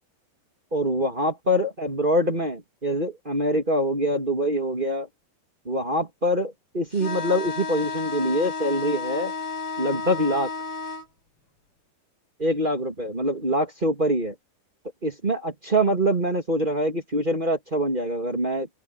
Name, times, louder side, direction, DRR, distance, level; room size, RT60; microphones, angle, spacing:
voice 1, 0.7-5.1 5.6-9.3 9.8-10.5 12.4-14.3 15.0-18.7, equal, 25° right, 1.2 m, -24 dB
sound 1, 6.9-11.1, left 4 dB, 30° left, 5.6 m, -32 dB
open air
omnidirectional pair, 5.3 m